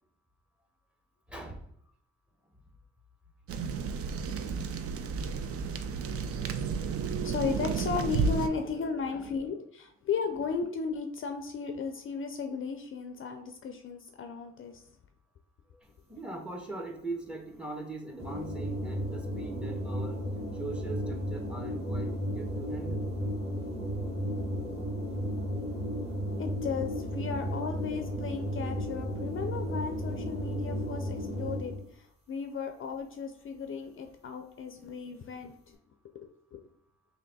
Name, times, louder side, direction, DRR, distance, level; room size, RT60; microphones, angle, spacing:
voice 1, 1.3-1.7 4.5-4.7 8.5-8.6 9.1-9.4 15.8-23.2 25.9-26.0 34.8-34.9, right 2 dB, 5° right, 3 dB, 0.8 m, -41 dB
sound 1, 3.5-8.5, right 5 dB, 50° right, 0.4 m, -32 dB
voice 2, 7.1-14.8 26.4-35.8 36.1-36.6, left 5 dB, 45° left, 6 dB, 0.4 m, -35 dB
sound 2, 18.2-31.9, equal, 20° right, 1.2 m, -34 dB
3.2 x 2.8 x 3.9 m, 0.71 s
cardioid pair, 90°, 30 cm